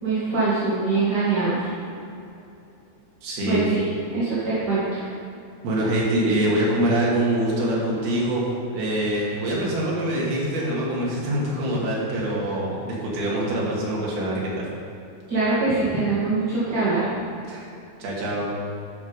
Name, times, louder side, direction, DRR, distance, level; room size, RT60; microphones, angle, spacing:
voice 1, 0.0-1.7 3.5-5.0 15.3-17.1, right 3 dB, 40° right, -11 dB, 1.6 m, -23 dB
voice 2, 3.2-3.6 5.6-14.7 17.5-17.7 18.0-18.5, right 1 dB, 70° right, -5 dB, 3.8 m, -24 dB
11.5 x 6.1 x 5.1 m, 2.7 s
omnidirectional pair, 4.7 m